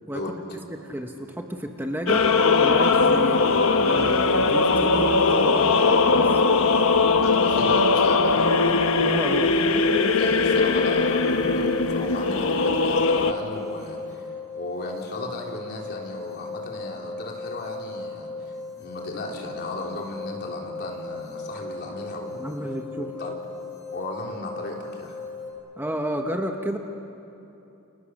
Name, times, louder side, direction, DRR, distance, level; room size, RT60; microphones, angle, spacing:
voice 1, 0.7-2.3 2.6-6.4 9.0-9.5 22.3-23.1 25.8-26.8, equal, 10° right, 3 dB, 1.1 m, -31 dB
sound 1, 2.1-13.3, left 4 dB, 65° left, 1.1 m, -20 dB
voice 2, 7.2-8.4 10.2-14.2 14.6-22.5 22.9-23.3 23.9-25.2, left 1 dB, 50° left, -1 dB, 3.8 m, -35 dB
sound 2, 9.9-25.5, left 3 dB, 15° left, 7.4 m, -37 dB
29.5 x 28.0 x 6.5 m, 2.9 s
head